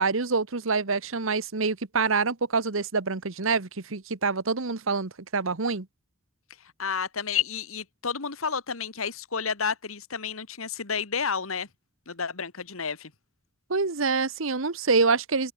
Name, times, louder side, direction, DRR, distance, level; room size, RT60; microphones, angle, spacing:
voice 1, 0.0-5.9 13.7-15.5, right 4 dB, 75° right, 1.3 m, -26 dB
voice 2, 6.8-11.7 12.1-13.1, left 6 dB, 85° left, 1.7 m, -30 dB
open air
head